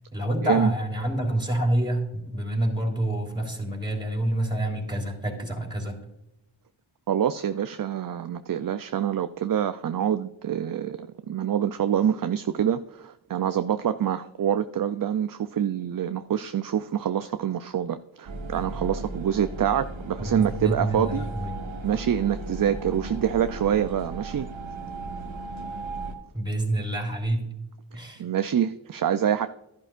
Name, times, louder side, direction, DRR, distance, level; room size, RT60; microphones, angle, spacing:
voice 1, 0.1-6.0 20.2-21.5 26.3-27.4 27.9-28.2, right 1 dB, 10° right, 1 dB, 3.4 m, -27 dB
voice 2, 7.1-21.3 21.8-24.5 28.2-29.5, right 9 dB, 45° right, 11 dB, 0.5 m, -26 dB
sound 1, 18.3-26.2, right 2 dB, 70° right, 1.5 m, -36 dB
11.5 x 11.0 x 2.5 m, 0.87 s
cardioid pair, 40°, 49 cm